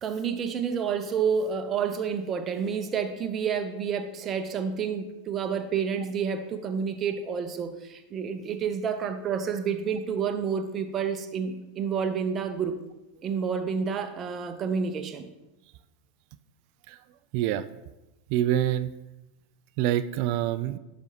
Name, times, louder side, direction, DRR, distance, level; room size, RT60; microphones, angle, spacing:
voice 1, 0.0-12.8 13.2-15.3, right 6 dB, 30° right, 8 dB, 0.7 m, -29 dB
voice 2, 17.3-17.7 18.3-19.0 19.8-20.8, right 12 dB, 50° right, 14 dB, 0.3 m, -26 dB
11.5 x 5.2 x 2.9 m, 0.97 s
figure-of-eight pair, 85°, 0 cm